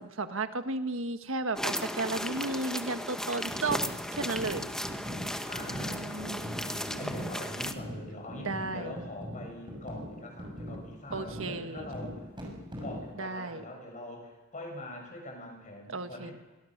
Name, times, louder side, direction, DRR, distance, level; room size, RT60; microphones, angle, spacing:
voice 1, 0.0-3.8 4.1-4.6 5.7-6.6 7.0-7.3 8.4-9.0 11.1-11.9 13.2-13.7 15.9-16.3, right 3 dB, 85° right, 8 dB, 1.5 m, -34 dB
sound 1, 1.6-7.7, equal, 5° left, 1.2 m, -36 dB
sound 2, 3.5-13.1, equal, 25° right, 6.7 m, -41 dB
voice 2, 5.4-12.3 12.8-16.3, left 1 dB, 40° left, 1 dB, 7.7 m, -43 dB
25.0 x 22.5 x 6.7 m, 1.2 s
head